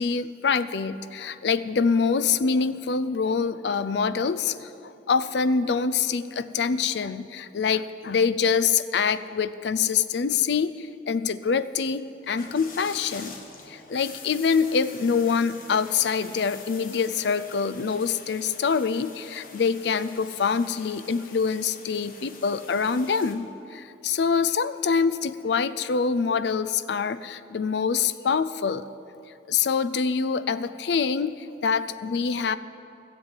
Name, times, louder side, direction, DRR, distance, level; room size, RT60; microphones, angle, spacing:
voice 1, 0.0-13.4 13.7-28.8 29.5-32.6, left 5 dB, 65° left, 15 dB, 0.4 m, -25 dB
sound 1, 12.2-23.3, left 4 dB, 50° left, 1.2 m, -45 dB
13.0 x 7.6 x 8.2 m, 2.7 s
head